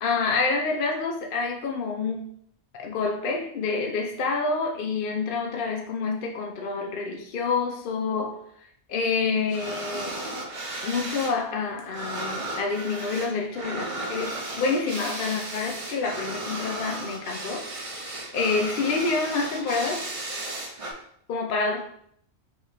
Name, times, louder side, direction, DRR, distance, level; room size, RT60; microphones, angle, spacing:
voice 1, 0.0-2.2 2.7-8.4 8.9-10.2 10.8-20.0 21.3-21.8, left 4 dB, 60° left, 1 dB, 0.7 m, -28 dB
sound 1, 9.5-11.4 11.6-20.9, right 2 dB, 40° right, 0.6 m, -35 dB
4.0 x 3.0 x 3.2 m, 0.66 s
omnidirectional pair, 1.1 m